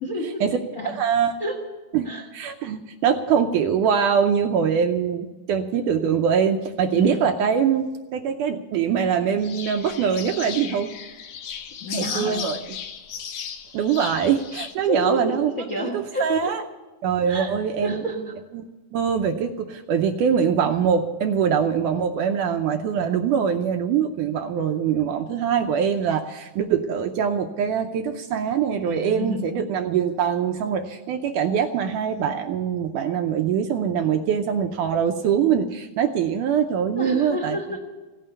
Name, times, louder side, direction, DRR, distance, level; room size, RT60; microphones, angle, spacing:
voice 1, 0.0-0.4 0.7-1.0 1.4-1.6 2.0-2.3 6.9-7.3 11.8-12.4 14.8-16.5 17.3-17.5 17.8-18.4 28.8-29.5 36.9-37.8, equal, 45° left, 2 dB, 1.1 m, -30 dB
voice 2, 0.9-1.3 1.9-10.9 11.9-12.6 13.7-15.5 15.8-16.6 17.0-18.0 18.5-18.6 18.9-37.6, right 7 dB, 80° right, 5 dB, 2.0 m, -23 dB
sound 1, 9.4-14.7, left 7 dB, 65° left, 2.3 m, -35 dB
16.0 x 9.3 x 8.1 m, 1.2 s
omnidirectional pair, 4.2 m